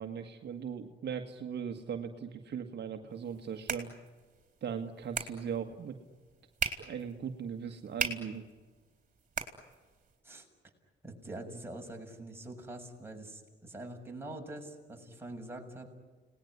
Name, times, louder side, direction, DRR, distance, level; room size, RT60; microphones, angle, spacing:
voice 1, 0.0-3.9 4.6-6.0 6.8-8.4, right 7 dB, 60° right, 5 dB, 1.9 m, -39 dB
sound 1, 3.1-10.2, right 5 dB, 40° right, 4.2 m, -41 dB
voice 2, 11.0-15.9, right 1 dB, 10° right, 1 dB, 6.6 m, -44 dB
29.5 x 19.5 x 9.8 m, 1.4 s
cardioid pair, 90°, 20 cm